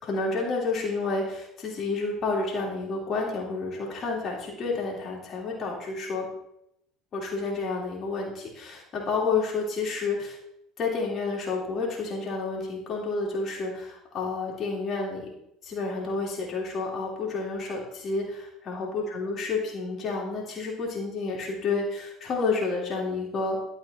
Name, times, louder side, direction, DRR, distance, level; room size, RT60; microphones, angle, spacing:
voice 1, 0.0-6.3 7.1-10.4 10.8-15.3 15.6-23.6, left 3 dB, 40° left, -2 dB, 3.0 m, -30 dB
12.0 x 4.4 x 4.3 m, 0.81 s
figure-of-eight pair, 65°, 0 cm